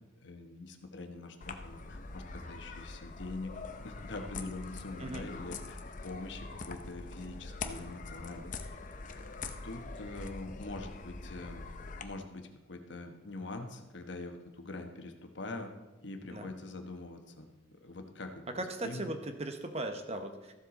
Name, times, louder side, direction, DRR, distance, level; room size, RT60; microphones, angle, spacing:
voice 1, 0.2-3.5 3.8-8.5 9.4-11.6 12.0-15.7 16.0-19.1, left 2 dB, 65° left, 5 dB, 1.1 m, -44 dB
sound 1, 1.4-12.0, left 3 dB, 40° left, 0.6 m, -44 dB
voice 2, 18.5-20.5, right 1 dB, 30° right, 7 dB, 0.9 m, -38 dB
13.5 x 7.4 x 4.1 m, 1.1 s
head